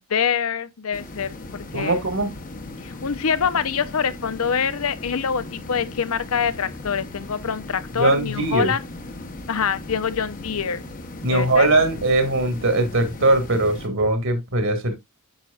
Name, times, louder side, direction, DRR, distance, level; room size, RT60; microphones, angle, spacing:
voice 1, 0.1-2.0 2.8-8.8 9.5-10.8 11.2-11.7, left 6 dB, 75° left, 0.7 m, -25 dB
sound 1, 0.9-13.9, left 2 dB, 40° left, 1.0 m, -37 dB
voice 2, 1.7-2.3 8.0-8.7 11.2-14.9, right 2 dB, 60° right, 1.8 m, -20 dB
8.9 x 6.3 x 2.4 m
head